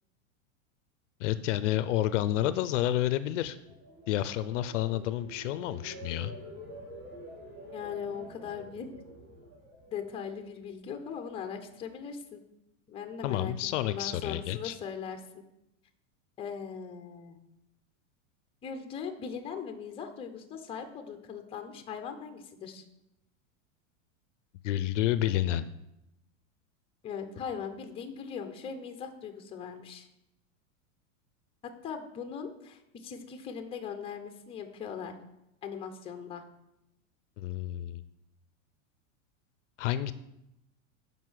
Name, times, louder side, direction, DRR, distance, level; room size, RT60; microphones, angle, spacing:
voice 1, 1.2-3.6 4.1-6.3 13.2-14.8 24.6-25.6 37.4-38.0 39.8-40.1, left 13 dB, 65° left, 14 dB, 0.6 m, -29 dB
sound 1, 3.4-10.6 11.0-11.4, equal, 35° right, 3.8 m, -48 dB
voice 2, 7.7-8.9 9.9-12.4 12.9-13.5 13.8-15.4 16.4-17.4 18.6-22.8 27.0-30.1 31.8-35.2 35.6-36.4, left 7 dB, 15° left, 7 dB, 0.7 m, -39 dB
7.5 x 5.4 x 6.2 m, 0.86 s
supercardioid pair, 155°, 40 cm